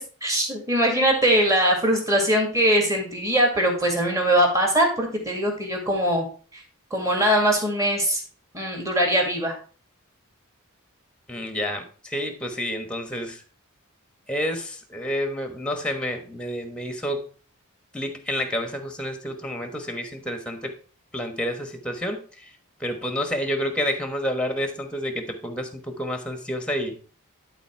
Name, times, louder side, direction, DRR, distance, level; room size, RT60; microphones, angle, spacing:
voice 1, 0.0-6.3 6.9-8.2 8.5-9.5, equal, 15° right, 1 dB, 2.1 m, -21 dB
voice 2, 11.3-13.4 14.3-17.3 17.9-20.7 21.1-22.5 22.8-27.0, equal, 5° left, 6 dB, 1.2 m, -29 dB
11.5 x 4.1 x 4.6 m, 0.39 s
head